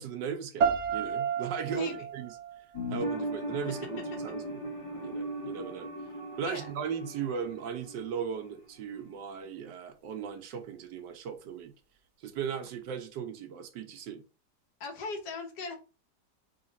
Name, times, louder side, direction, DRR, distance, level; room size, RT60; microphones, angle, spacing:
voice 1, 0.0-2.3 2.9-4.4 5.0-5.9 6.4-11.7 12.2-14.2, right 7 dB, 85° right, 1.5 m, -37 dB
sound 1, 0.6-3.6, right 7 dB, 60° right, 0.7 m, -32 dB
voice 2, 1.7-2.1 6.4-6.7 14.8-15.8, left 4 dB, 70° left, 1.6 m, -38 dB
sound 2, 2.7-8.3 8.5-8.6, equal, 20° left, 1.3 m, -38 dB
4.0 x 3.3 x 3.9 m
omnidirectional pair, 1.8 m